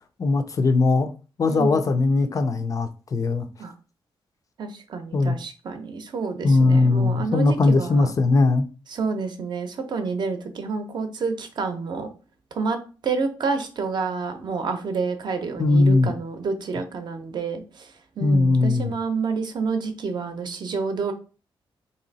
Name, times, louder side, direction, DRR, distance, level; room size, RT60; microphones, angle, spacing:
voice 1, 0.2-1.1 1.4-3.5 5.1-5.4 6.4-8.7 15.6-16.1 18.2-18.9, left 3 dB, 35° left, 0.4 m, -19 dB
voice 2, 1.4-1.8 3.6-3.7 4.6-8.1 8.9-12.1 12.5-21.1, right 4 dB, 50° right, 0.6 m, -29 dB
3.2 x 2.8 x 3.9 m
wide cardioid pair, 160°, 9 cm